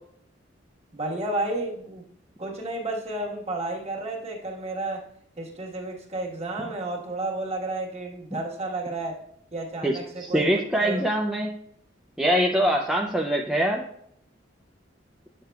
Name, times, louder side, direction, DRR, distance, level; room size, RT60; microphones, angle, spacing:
voice 1, 0.9-2.0 2.4-5.1 5.4-9.2 9.5-11.0, right 2 dB, 35° right, -1 dB, 1.3 m, -32 dB
voice 2, 10.2-11.5 12.2-13.8, equal, 5° right, -1 dB, 0.4 m, -23 dB
9.1 x 6.5 x 2.3 m, 0.68 s
head